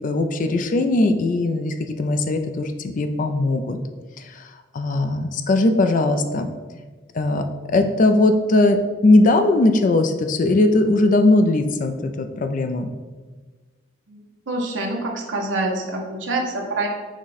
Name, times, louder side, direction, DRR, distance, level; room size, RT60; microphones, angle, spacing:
voice 1, 0.0-3.8 4.4-4.5 4.7-6.5 7.1-12.9, left 2 dB, 40° left, 7 dB, 0.4 m, -19 dB
voice 2, 14.1-16.9, right 2 dB, 70° right, 0 dB, 0.7 m, -26 dB
6.1 x 2.1 x 4.0 m, 1.3 s
head